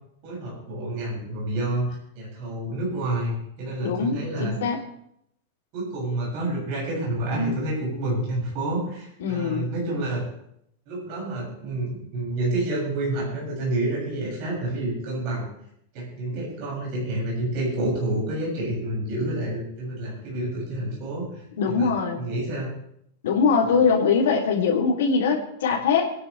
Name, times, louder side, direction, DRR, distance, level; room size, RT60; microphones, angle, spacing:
voice 1, 0.2-4.6 5.7-10.3 10.9-15.5 15.9-21.9 22.2-22.7 23.6-23.9, right 1 dB, 35° right, -4 dB, 7.2 m, -29 dB
voice 2, 3.8-4.8 9.2-9.7 21.6-22.2 23.2-26.1, left 5 dB, 85° left, -2 dB, 3.2 m, -22 dB
26.5 x 10.5 x 3.4 m, 0.75 s
supercardioid pair, 175°, 0 cm